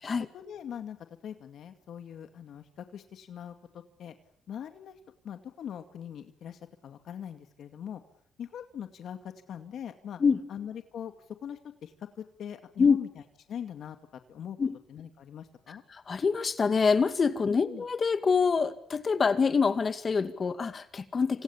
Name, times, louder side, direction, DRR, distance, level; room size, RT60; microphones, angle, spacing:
voice 1, 0.3-1.0 1.2-4.1 4.5-5.0 5.2-8.0 8.4-10.2 10.5-11.1 11.4-13.1 13.5-14.0 14.3-14.6 14.9-15.8 17.5-17.8, left 9 dB, 70° left, 7 dB, 2.3 m, -41 dB
voice 2, 15.7-21.4, left 5 dB, 40° left, 10 dB, 2.3 m, -26 dB
28.5 x 27.0 x 7.4 m, 0.63 s
cardioid pair, 90°, 0 cm